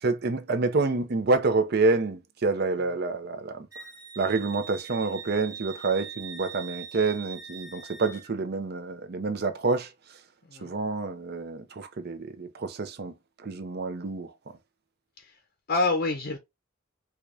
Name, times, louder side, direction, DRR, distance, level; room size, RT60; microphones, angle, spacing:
voice 1, 0.0-3.7 4.2-10.2 10.6-14.3, right 3 dB, 50° right, 0.6 m, -28 dB
Wind instrument woodwind instrument, 3.7-8.3, right 7 dB, 15° right, 1.1 m, -42 dB
voice 2, 15.7-16.4, left 3 dB, 50° left, 0.6 m, -27 dB
4.5 x 2.3 x 2.5 m
head